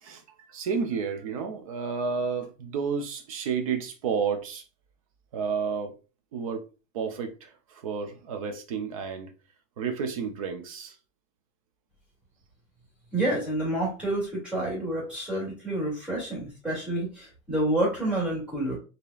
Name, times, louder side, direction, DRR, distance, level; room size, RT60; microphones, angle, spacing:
voice 1, 0.5-4.6 5.3-5.9 6.3-6.6 6.9-9.3 9.8-11.0, right 6 dB, 30° right, 0.3 m, -31 dB
voice 2, 13.1-18.8, right 1 dB, 5° right, 2.0 m, -28 dB
5.0 x 2.8 x 2.3 m
supercardioid pair, 150°, 42 cm